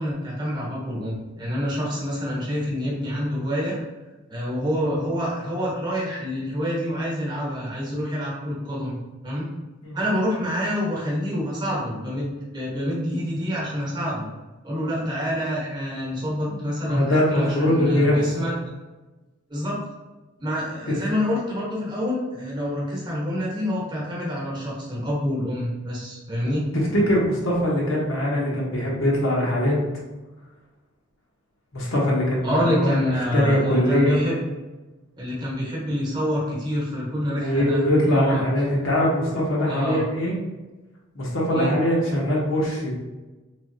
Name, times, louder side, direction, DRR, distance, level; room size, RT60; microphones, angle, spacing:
voice 1, 0.0-3.8 4.3-9.0 9.2-9.5 9.9-14.2 14.6-18.5 19.5-19.8 20.4-26.6 32.4-34.4 35.2-38.4 39.7-40.0 41.5-41.7, equal, 20° right, -5 dB, 0.9 m, -27 dB
voice 2, 16.5-18.5 20.9-21.0 26.4-26.6 26.9-29.8 31.7-34.2 37.3-40.4 41.1-42.9, equal, 80° left, -3 dB, 0.9 m, -22 dB
3.4 x 3.0 x 2.6 m, 1.2 s
head